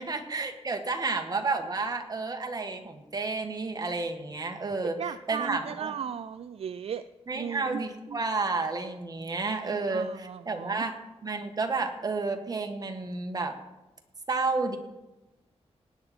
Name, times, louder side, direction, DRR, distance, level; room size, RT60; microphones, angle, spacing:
voice 1, 0.0-5.9 7.3-10.9 11.2-13.5 14.3-14.8, right 3 dB, 35° right, 5 dB, 1.5 m, -31 dB
voice 2, 5.0-7.0 7.3-7.8 8.1-8.2 9.6-10.9, right 8 dB, 60° right, 13 dB, 0.4 m, -37 dB
18.5 x 8.7 x 4.3 m, 1.0 s
wide cardioid pair, 135°, 11 cm